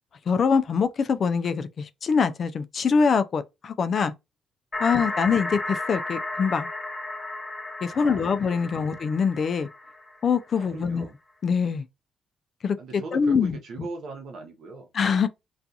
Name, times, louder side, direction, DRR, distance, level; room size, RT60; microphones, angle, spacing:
voice 1, 0.3-4.1 4.8-6.7 7.8-9.7 10.2-11.1 11.4-11.9 12.6-13.6 14.9-15.3, left 5 dB, 50° left, 0.3 m, -24 dB
sound 1, 4.7-10.4, left 2 dB, 25° left, 0.8 m, -33 dB
voice 2, 7.9-8.5 8.8-8.9 10.6-11.1 12.8-14.9, right 3 dB, 70° right, 0.8 m, -39 dB
2.4 x 2.3 x 2.6 m
cardioid pair, 90°, 0 cm